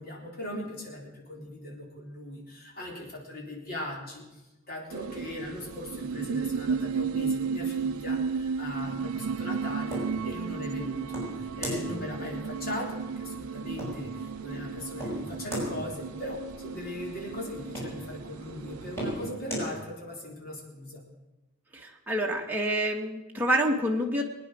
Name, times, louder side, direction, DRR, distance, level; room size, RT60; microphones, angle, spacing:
voice 1, 0.0-21.0, left 1 dB, 45° left, -1 dB, 3.9 m, -39 dB
sound 1, 4.9-19.3, right 5 dB, 85° right, 0.4 m, -34 dB
sound 2, 9.4-19.7, equal, 10° left, 6.2 m, -39 dB
voice 2, 21.7-24.2, right 1 dB, 10° right, -1 dB, 1.6 m, -27 dB
22.0 x 9.7 x 6.3 m, 1.0 s
head